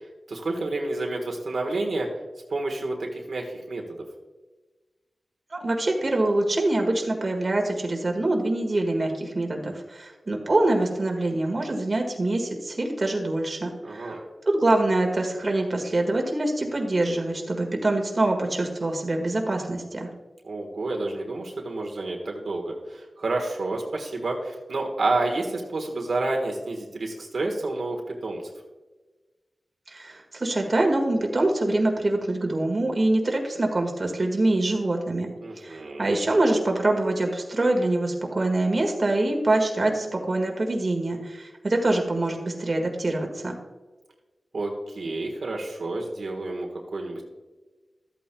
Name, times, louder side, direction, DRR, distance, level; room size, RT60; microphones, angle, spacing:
voice 1, 0.3-2.1 2.5-3.8 13.8-14.2 20.4-28.4 35.4-36.2 44.5-47.2, right 2 dB, 75° right, 0 dB, 1.4 m, -29 dB
voice 2, 5.5-20.1 29.9-35.3 35.6-43.6, right 2 dB, 40° right, 2 dB, 1.6 m, -25 dB
13.0 x 8.7 x 2.3 m, 1.2 s
wide cardioid pair, 75°, 0 cm